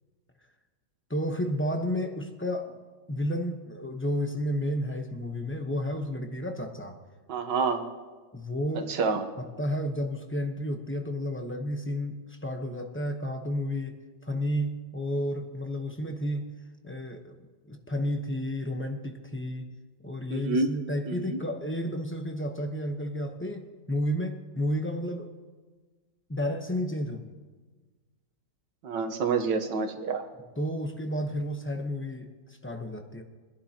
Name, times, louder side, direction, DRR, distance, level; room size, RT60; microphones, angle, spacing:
voice 1, 1.1-2.7 3.1-7.0 8.3-8.9 9.4-14.0 14.2-16.5 16.8-17.3 17.7-19.7 20.0-25.3 26.3-27.3 30.6-33.2, equal, 15° left, 4 dB, 0.4 m, -31 dB
voice 2, 7.3-7.9 8.8-9.3 20.3-20.7 21.1-21.4 28.8-30.3, right 4 dB, 75° right, 6 dB, 1.7 m, -28 dB
23.5 x 11.5 x 2.9 m, 1.3 s
omnidirectional pair, 2.0 m